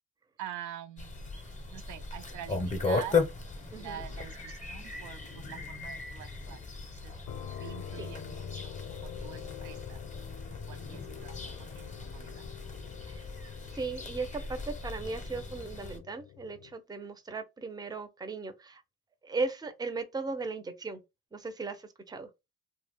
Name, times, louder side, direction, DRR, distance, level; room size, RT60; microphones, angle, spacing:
voice 1, 0.4-1.3 1.7-3.2 3.8-7.1 7.6-10.0 10.7-12.4, right 10 dB, 75° right, 0.5 m, -45 dB
sound 1, 1.0-16.0, left 4 dB, 25° left, 0.7 m, -37 dB
voice 2, 3.7-4.0 8.0-8.1 13.1-13.3 13.7-18.8 19.2-21.0 21.3-22.3, right 3 dB, 15° right, 0.5 m, -37 dB
sound 2, 7.3-16.8, left 10 dB, 65° left, 0.4 m, -46 dB
2.4 x 2.1 x 3.3 m
cardioid pair, 90°, 30 cm